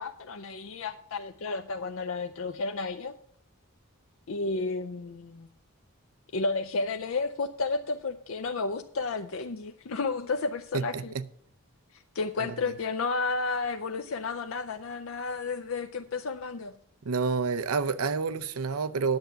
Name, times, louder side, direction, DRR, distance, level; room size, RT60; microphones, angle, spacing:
voice 1, 0.0-3.1 4.3-5.5 6.3-11.1 11.9-16.8, left 3 dB, 65° left, 0.5 m, -32 dB
voice 2, 10.7-11.2 12.4-12.5 17.0-19.2, right 5 dB, 80° right, 0.6 m, -29 dB
10.5 x 7.9 x 5.7 m
head